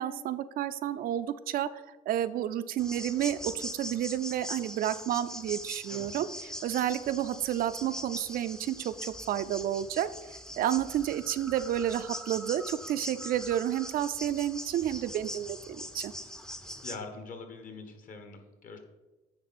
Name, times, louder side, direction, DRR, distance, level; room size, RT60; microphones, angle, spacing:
voice 1, 0.0-10.1 10.6-16.1, right 11 dB, 60° right, 12 dB, 0.4 m, -31 dB
sound 1, 2.8-17.0, equal, 5° left, 0.5 m, -42 dB
voice 2, 16.8-18.8, left 4 dB, 50° left, 6 dB, 1.2 m, -43 dB
9.5 x 3.7 x 4.2 m, 1.1 s
cardioid pair, 110°, 17 cm